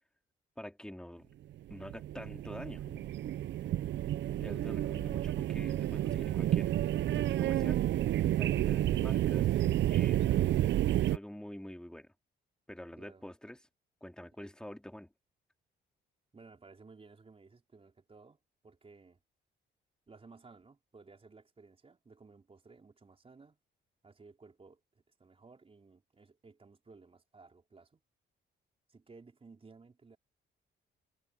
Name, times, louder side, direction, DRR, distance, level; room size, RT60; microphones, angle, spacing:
voice 1, 0.6-1.3 1.7-3.1 4.4-6.8 7.1-7.8 8.1-9.6 9.9-10.3 11.0-12.1 12.7-13.6 14.0-15.1, left 1 dB, 5° left, 3.6 m, -46 dB
sound 1, 1.6-11.2, right 13 dB, 65° right, 0.6 m, -30 dB
voice 2, 16.3-19.2 20.1-23.6 24.0-28.0 28.9-30.2, right 4 dB, 30° right, 4.3 m, -57 dB
cardioid pair, 90°, 20 cm